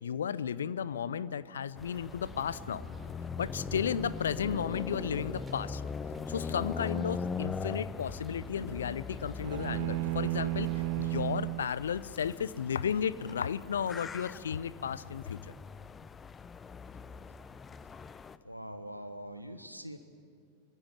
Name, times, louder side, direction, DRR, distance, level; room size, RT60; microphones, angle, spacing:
voice 1, 0.0-2.8 3.4-5.8 6.3-15.4, left 8 dB, 65° left, 18 dB, 0.7 m, -34 dB
sound 1, 1.8-18.4, left 5 dB, 20° left, 0.8 m, -41 dB
sound 2, 1.9-11.0, right 2 dB, 15° right, 4.3 m, -50 dB
sound 3, 9.4-11.7, right 19 dB, 45° right, 0.6 m, -33 dB
voice 2, 18.4-20.0, equal, 90° right, 8 dB, 1.3 m, -43 dB
24.5 x 22.5 x 8.8 m, 2.2 s
figure-of-eight pair, 90°, 0 cm